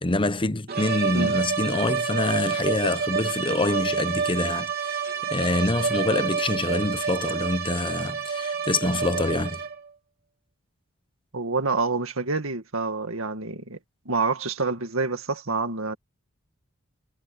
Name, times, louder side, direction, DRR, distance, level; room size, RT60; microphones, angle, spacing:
voice 1, 0.0-5.0 5.3-9.6, left 2 dB, 25° left, 0.9 m, -26 dB
sound 1, 0.7-9.9, right 6 dB, 50° right, 3.4 m, -28 dB
voice 2, 11.3-13.8 14.1-16.0, right 3 dB, 80° right, 2.0 m, -27 dB
head